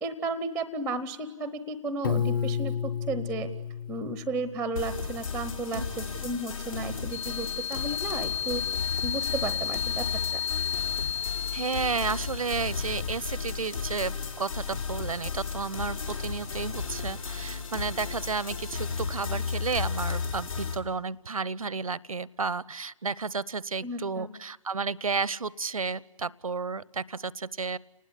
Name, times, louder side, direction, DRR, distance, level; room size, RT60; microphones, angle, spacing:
voice 1, 0.0-3.5 3.9-8.6 9.0-10.1 23.8-24.3, right 2 dB, ahead, 12 dB, 0.8 m, -33 dB
Piano, 2.0-5.0, left 7 dB, 35° left, 1.5 m, -31 dB
sound 1, 4.8-20.8, left 5 dB, 70° left, 4.7 m, -34 dB
sound 2, 7.1-12.8, left 8 dB, 55° left, 2.6 m, -33 dB
voice 2, 11.5-27.8, right 4 dB, 70° right, 21 dB, 0.9 m, -32 dB
29.5 x 20.0 x 9.9 m, 1.1 s
figure-of-eight pair, 145°, 18 cm